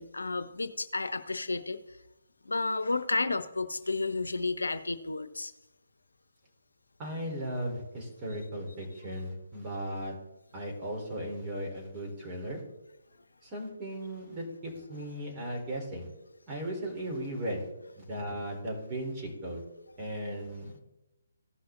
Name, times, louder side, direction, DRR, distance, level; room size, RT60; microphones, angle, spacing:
voice 1, 0.0-1.8 2.4-5.5, left 3 dB, 80° left, 13 dB, 0.8 m, -31 dB
voice 2, 7.0-10.1 10.5-12.6 13.4-16.1 16.5-17.7 18.0-19.6 20.0-20.7, right 1 dB, 20° right, -2 dB, 3.7 m, -36 dB
16.0 x 5.8 x 3.8 m, 0.96 s
figure-of-eight pair, 140°, 0 cm